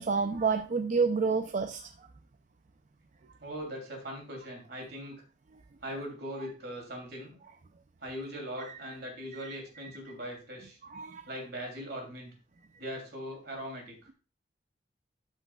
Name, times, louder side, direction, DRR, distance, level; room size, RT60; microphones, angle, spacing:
voice 1, 0.0-1.9 8.6-8.8 9.3-9.6 10.8-11.2, right 5 dB, 45° right, 7 dB, 0.5 m, -29 dB
voice 2, 3.4-5.2 5.8-7.4 8.0-10.8 11.2-12.3 12.8-13.9, equal, 60° right, 1 dB, 3.1 m, -40 dB
13.0 x 5.7 x 2.3 m, 0.35 s
head